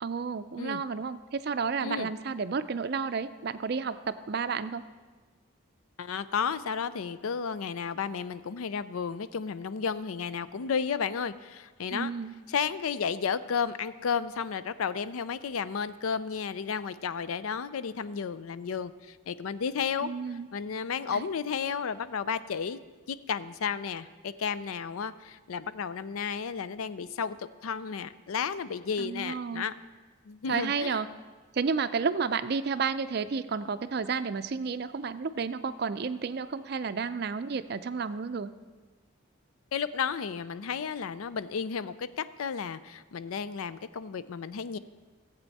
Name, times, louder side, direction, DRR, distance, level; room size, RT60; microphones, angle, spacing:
voice 1, 0.0-4.8 11.9-12.4 20.0-20.5 21.1-21.3 29.0-29.6 30.5-31.1 31.5-38.5, right 5 dB, 50° right, 12 dB, 0.4 m, -31 dB
voice 2, 6.0-12.1 12.5-20.1 20.5-22.8 23.1-29.7 30.3-31.0 39.7-44.8, left 6 dB, 90° left, 15 dB, 0.4 m, -33 dB
16.0 x 8.2 x 4.1 m, 1.4 s
head